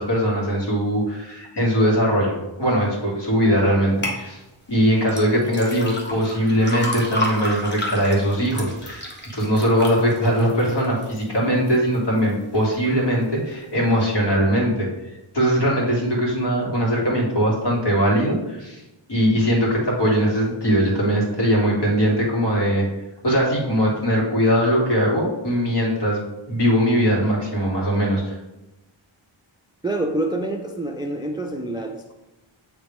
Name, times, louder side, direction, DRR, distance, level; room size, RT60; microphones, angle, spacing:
voice 1, 0.0-4.4 4.7-9.0 9.3-14.9 15.3-18.8 19.1-22.8 23.2-28.4, equal, 55° left, -4 dB, 2.2 m, -20 dB
sound 1, 4.0-4.2 5.1-11.2 11.7-12.2 12.7-12.8, left 1 dB, 20° left, 1.2 m, -31 dB
voice 2, 29.8-32.1, right 1 dB, 10° right, 4 dB, 0.4 m, -27 dB
8.2 x 3.3 x 3.5 m, 0.98 s
wide cardioid pair, 90°, 49 cm